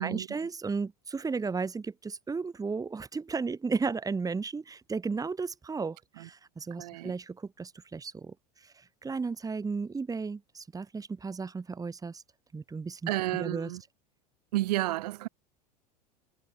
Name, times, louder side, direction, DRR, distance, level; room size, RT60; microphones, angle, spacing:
voice 1, 0.0-12.2 12.5-13.1 13.4-13.7, right 4 dB, 15° right, 2.8 m, -34 dB
voice 2, 6.8-7.1 13.1-13.8 14.5-15.3, right 17 dB, 70° right, 5.2 m, -31 dB
hypercardioid pair, 85°, 21 cm